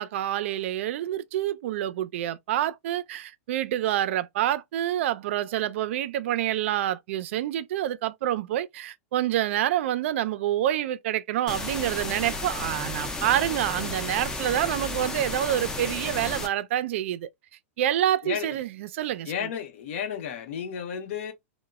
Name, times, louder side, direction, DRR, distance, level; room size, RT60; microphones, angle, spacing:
voice 1, 0.0-17.3 17.8-19.3, right 12 dB, 65° right, 0.4 m, -27 dB
sound 1, 11.5-16.5, left 2 dB, 10° left, 0.4 m, -33 dB
voice 2, 18.2-18.6 19.2-21.3, left 8 dB, 65° left, 0.8 m, -33 dB
3.0 x 2.1 x 2.3 m
supercardioid pair, 155°, 7 cm